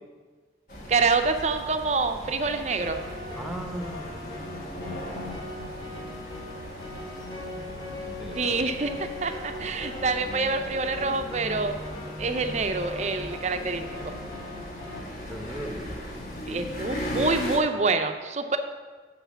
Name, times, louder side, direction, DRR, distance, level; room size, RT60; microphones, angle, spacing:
sound 1, 0.7-17.6, equal, 50° left, 1.5 m, -38 dB
voice 1, 0.9-3.0 8.3-8.9 9.2-11.8 12.2-14.1 16.5-18.6, right 4 dB, 40° right, 7 dB, 0.5 m, -26 dB
sound 2, 2.5-15.0, left 1 dB, 20° left, 1.3 m, -40 dB
voice 2, 3.4-4.1 4.8-5.0 7.5-8.5 15.3-16.0, right 1 dB, ahead, 2 dB, 0.8 m, -38 dB
6.5 x 5.7 x 7.3 m, 1.4 s
head